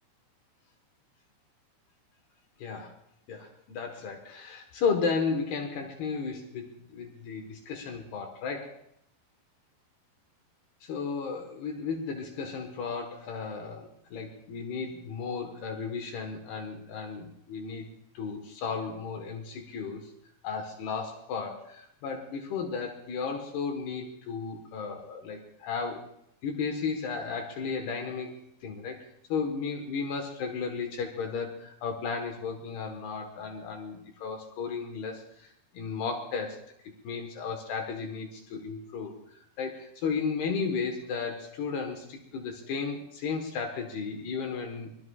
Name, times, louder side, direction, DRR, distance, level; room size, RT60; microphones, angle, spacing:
voice 1, 2.6-2.9 3.3-8.8 10.8-17.9 18.1-20.1 20.4-26.1 26.4-29.0 29.3-36.6 37.0-39.1 39.6-44.9, left 5 dB, 70° left, 4 dB, 3.3 m, -34 dB
24.0 x 21.5 x 2.4 m, 0.72 s
omnidirectional pair, 4.9 m